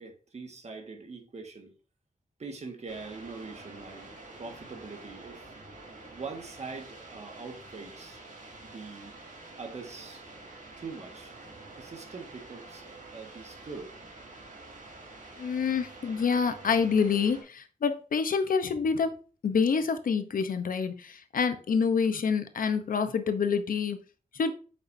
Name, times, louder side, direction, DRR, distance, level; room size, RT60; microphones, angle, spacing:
voice 1, 0.0-1.7 2.4-4.1 4.4-5.5 6.1-8.2 8.6-9.1 9.6-10.2 10.8-11.3 11.8-12.9 13.1-14.0, right 4 dB, 50° right, 1.7 m, -43 dB
sound 1, 2.9-17.4, right 3 dB, 70° right, 3.4 m, -48 dB
voice 2, 15.4-19.1 19.4-24.0 24.3-24.5, left 5 dB, 85° left, 0.9 m, -27 dB
8.3 x 6.3 x 2.7 m
wide cardioid pair, 150°, 14 cm